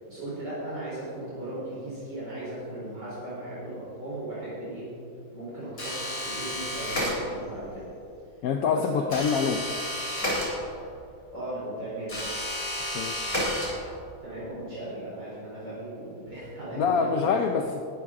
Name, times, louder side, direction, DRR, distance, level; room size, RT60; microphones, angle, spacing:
voice 1, 0.1-4.9 5.3-7.9 8.6-9.1 11.3-12.2 14.2-17.3, right 1 dB, 55° right, -9 dB, 4.4 m, -37 dB
sound 1, 5.8-7.6 9.1-11.0 12.1-14.1, left 1 dB, 30° left, 4.1 m, -31 dB
voice 2, 8.4-9.6 12.9-13.2 16.8-17.8, left 6 dB, 70° left, 5 dB, 0.8 m, -25 dB
19.5 x 12.5 x 3.7 m, 2.6 s
omnidirectional pair, 2.1 m